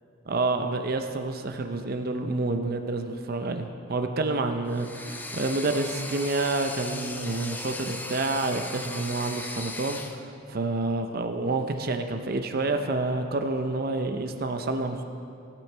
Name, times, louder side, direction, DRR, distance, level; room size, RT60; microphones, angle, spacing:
voice 1, 0.3-15.0, right 2 dB, 45° right, 6 dB, 0.5 m, -28 dB
sound 1, 4.7-10.2, left 2 dB, 10° left, 0.3 m, -37 dB
17.0 x 6.2 x 4.4 m, 2.7 s
head